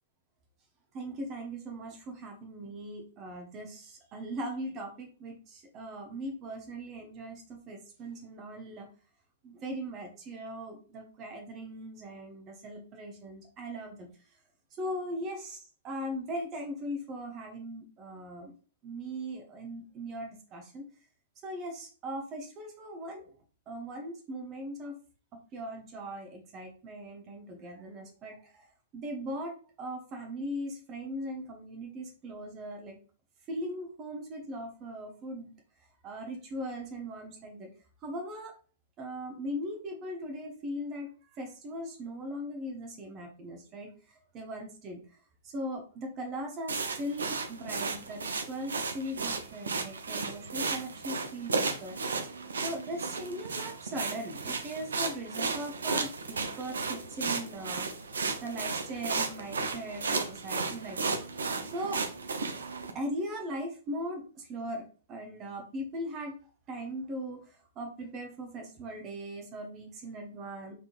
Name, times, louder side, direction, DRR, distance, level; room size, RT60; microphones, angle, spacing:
voice 1, 0.9-8.9 9.4-14.1 14.8-15.6 15.8-18.5 18.8-20.8 21.4-23.3 23.7-25.0 25.3-28.6 28.9-33.0 33.5-35.5 36.0-37.7 38.0-38.5 39.0-43.9 44.3-45.0 45.4-52.0 52.6-57.9 58.4-61.2 61.7-62.0 62.9-66.3 66.7-67.5 67.8-70.8, equal, 25° right, 3 dB, 0.8 m, -39 dB
sound 1, 46.7-62.9, right 4 dB, 65° right, 0.5 m, -34 dB
3.6 x 3.1 x 2.4 m, 0.38 s
figure-of-eight pair, 105°, 0 cm